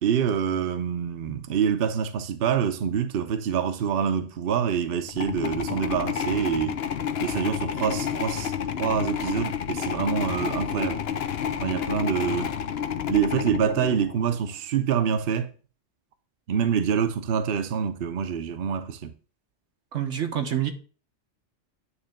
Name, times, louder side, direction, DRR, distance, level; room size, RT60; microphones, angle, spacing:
voice 1, 0.0-6.8 7.2-8.5 8.8-11.0 11.6-12.5 13.1-15.5 16.5-19.1, right 7 dB, 55° right, 0.9 m, -26 dB
sound 1, 5.1-14.4, left 8 dB, 60° left, 0.9 m, -30 dB
voice 2, 19.9-20.7, right 10 dB, 85° right, 1.4 m, -27 dB
9.7 x 3.3 x 6.5 m
omnidirectional pair, 1.2 m